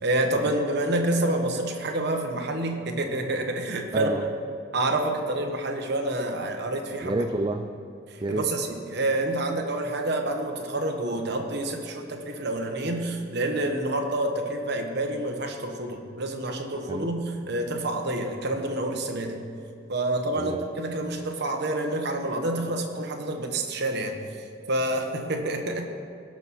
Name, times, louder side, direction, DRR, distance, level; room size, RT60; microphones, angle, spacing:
voice 1, 0.0-4.1 4.7-7.2 8.1-19.4 19.9-24.2 24.7-25.8, right 1 dB, 60° right, 3 dB, 1.2 m, -28 dB
voice 2, 3.9-4.2 7.0-7.7 8.2-8.5 16.9-17.1 20.4-20.6, right 2 dB, 25° right, 5 dB, 0.4 m, -29 dB
17.0 x 6.2 x 4.2 m, 2.6 s
head